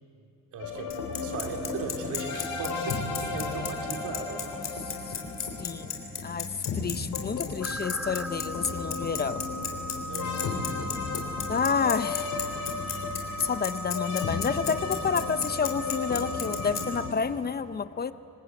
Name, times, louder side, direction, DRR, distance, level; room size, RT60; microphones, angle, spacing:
voice 1, 0.5-4.4 10.1-10.7, right 5 dB, 80° right, 3 dB, 2.9 m, -38 dB
sound 1, 0.6-17.1, left 4 dB, 80° left, 3.3 m, -35 dB
Bicycle, 0.9-16.8, left 8 dB, 55° left, 3.9 m, -34 dB
voice 2, 4.8-5.1 5.6-9.4 11.5-12.3 13.4-18.1, left 6 dB, 30° left, 13 dB, 0.7 m, -30 dB
sound 2, 7.6-17.1, right 1 dB, 5° right, 1.1 m, -38 dB
26.0 x 20.0 x 8.4 m, 2.7 s
cardioid pair, 90°, 30 cm